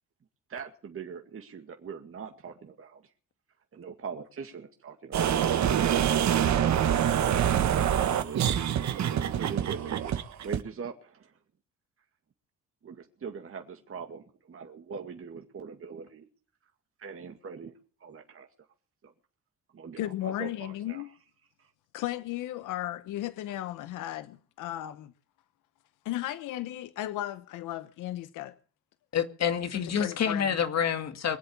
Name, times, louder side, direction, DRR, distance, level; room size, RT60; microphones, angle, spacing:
voice 1, 0.5-3.0 3.7-5.5 7.1-8.6 9.1-11.4 12.8-16.3 17.0-18.5 19.0-19.1 19.7-21.0 21.6-21.7, right 6 dB, 45° right, 2.2 m, -42 dB
sound 1, 5.1-10.6, right 9 dB, 65° right, 1.6 m, -25 dB
voice 2, 20.0-21.1 21.9-25.1 26.0-28.5 29.7-30.6, left 14 dB, 90° left, 1.0 m, -35 dB
voice 3, 29.1-31.4, left 7 dB, 60° left, 2.2 m, -28 dB
23.5 x 8.0 x 7.2 m
cardioid pair, 90°, 30 cm